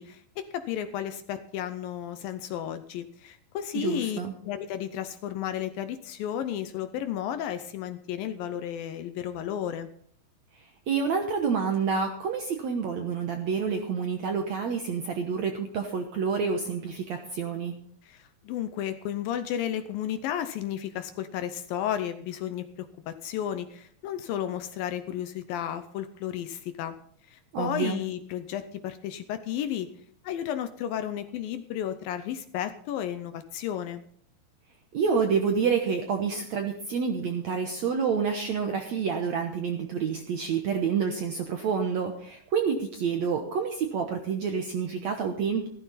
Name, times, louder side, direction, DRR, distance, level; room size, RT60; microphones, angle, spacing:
voice 1, 0.0-9.9 18.0-27.0 27.2-29.9 30.2-34.0, left 10 dB, 75° left, 10 dB, 2.2 m, -33 dB
voice 2, 3.7-4.3 10.9-17.7 27.5-28.0 34.9-45.7, right 6 dB, 70° right, 4 dB, 1.7 m, -28 dB
15.0 x 13.5 x 4.1 m, 0.62 s
omnidirectional pair, 4.6 m